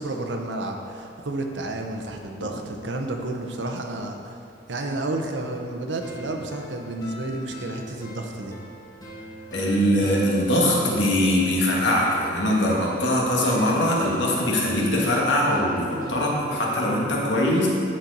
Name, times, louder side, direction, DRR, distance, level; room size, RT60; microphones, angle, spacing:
voice 1, 0.0-4.4 4.7-8.5, right 2 dB, 75° right, 3 dB, 0.8 m, -31 dB
sound 1, 6.0-17.0, equal, 20° left, 1.2 m, -41 dB
voice 2, 9.5-17.7, left 1 dB, 75° left, -3 dB, 1.6 m, -22 dB
12.5 x 4.4 x 4.0 m, 2.5 s
head